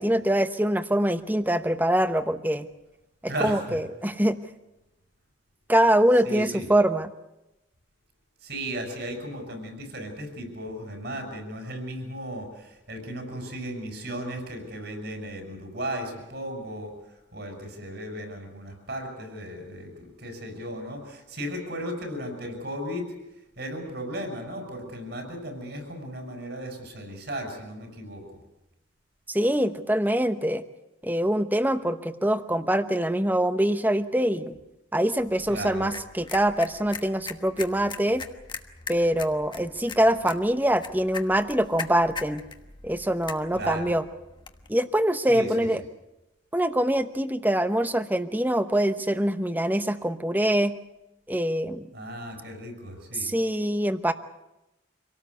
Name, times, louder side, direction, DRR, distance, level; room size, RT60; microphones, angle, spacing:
voice 1, 0.0-2.7 3.4-4.4 5.7-7.1 29.3-30.6 31.0-34.5 34.9-38.2 38.9-42.4 42.8-44.0 44.7-45.8 46.5-50.8 51.3-51.9 53.1-54.1, right 1 dB, 10° right, 11 dB, 0.9 m, -24 dB
voice 2, 3.3-3.8 6.2-6.6 8.4-16.9 17.3-23.1 23.6-28.2 35.5-35.9 43.5-43.9 45.3-45.7 51.9-53.3, equal, 60° right, 4 dB, 6.4 m, -35 dB
sound 1, 35.2-44.7, left 5 dB, 25° left, 1.2 m, -41 dB
26.0 x 18.0 x 8.1 m, 0.94 s
head